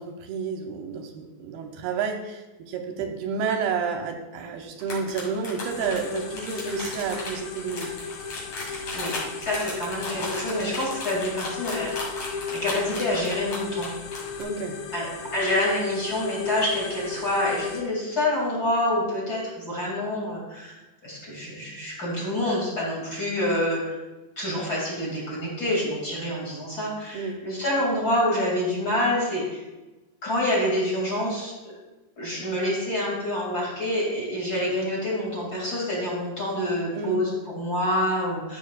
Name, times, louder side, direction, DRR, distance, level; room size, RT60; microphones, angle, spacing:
voice 1, 0.0-7.9 14.4-14.8 27.1-27.4 36.9-37.2, right 5 dB, 80° right, 4 dB, 2.4 m, -30 dB
sound 1, 4.8-14.4, left 3 dB, 50° left, 3.0 m, -35 dB
sound 2, 5.6-17.8, left 5 dB, 85° left, 1.9 m, -35 dB
voice 2, 9.4-11.9 12.5-13.9 14.9-20.8 21.0-24.0 24.4-29.6 30.2-31.5 32.2-38.6, left 1 dB, 30° left, -5 dB, 2.0 m, -27 dB
13.0 x 7.0 x 2.3 m, 1.1 s
omnidirectional pair, 4.9 m